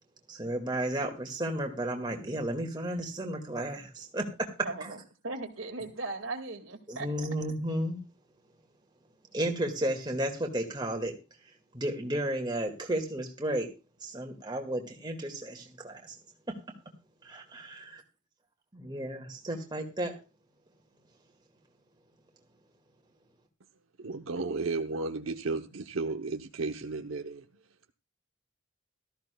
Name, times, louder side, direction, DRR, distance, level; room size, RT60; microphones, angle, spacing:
voice 1, 0.3-4.5 6.9-8.0 9.3-11.1 11.7-13.7 14.0-16.1 16.5-16.6 17.2-18.0 18.7-20.2, right 1 dB, 20° right, 1.9 m, -33 dB
voice 2, 4.6-7.1, right 3 dB, 75° right, 2.1 m, -38 dB
voice 3, 24.0-27.4, right 3 dB, 90° right, 0.9 m, -33 dB
17.5 x 13.5 x 2.3 m
head